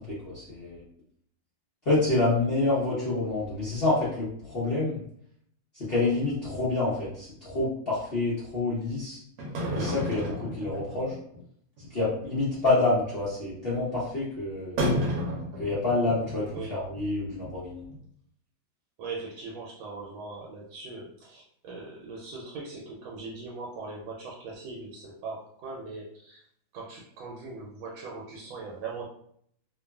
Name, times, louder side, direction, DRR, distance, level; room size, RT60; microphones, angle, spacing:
voice 1, 0.1-0.8 1.9-5.0 5.7-9.2 9.7-11.1 11.9-14.9 15.6-17.8, left 2 dB, 70° left, -9 dB, 0.5 m, -27 dB
sound 1, 9.4-11.4 11.8-11.9 12.1-12.2 12.5-12.8 13.1-13.2 14.8-16.6 16.9-17.0 17.4-17.5 17.9-18.0, equal, 65° right, 1.2 m, -31 dB
voice 2, 19.0-26.4 26.7-29.1, right 3 dB, 85° right, -3 dB, 1.4 m, -40 dB
3.1 x 2.3 x 2.2 m, 0.66 s
omnidirectional pair, 2.1 m